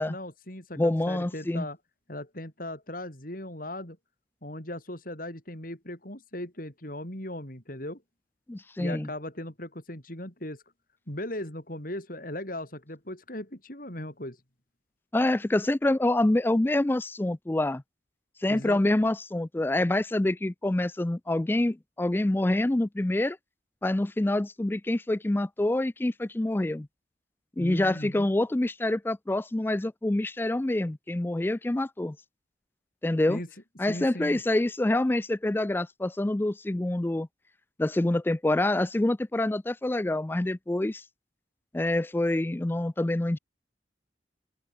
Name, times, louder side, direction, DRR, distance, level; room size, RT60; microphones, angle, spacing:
voice 1, 0.0-1.8 2.1-4.0 4.4-8.0 8.8-10.6 11.1-14.4 18.5-18.9 27.6-28.3 33.3-33.5 33.8-34.4, left 1 dB, 50° left, 5.6 m, -38 dB
voice 2, 0.8-1.7 8.5-9.1 15.1-17.8 18.4-23.4 23.8-26.9 27.6-32.2 33.0-33.4 33.8-37.3 37.8-41.0 41.7-43.4, left 1 dB, 10° left, 0.3 m, -26 dB
head